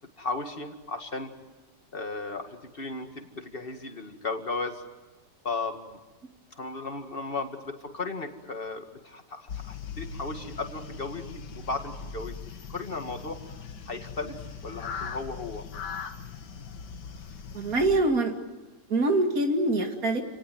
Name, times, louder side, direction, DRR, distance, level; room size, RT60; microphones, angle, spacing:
voice 1, 0.2-1.3 1.9-4.8 5.4-5.9 6.6-12.4 12.7-14.4 14.6-15.6, left 3 dB, 30° left, 5 dB, 2.2 m, -35 dB
sound 1, 9.5-18.0, left 6 dB, 80° left, 1.9 m, -40 dB
voice 2, 17.5-18.4 18.9-20.2, right 2 dB, 55° right, 4 dB, 2.8 m, -24 dB
29.0 x 18.5 x 9.3 m, 1.2 s
omnidirectional pair, 1.9 m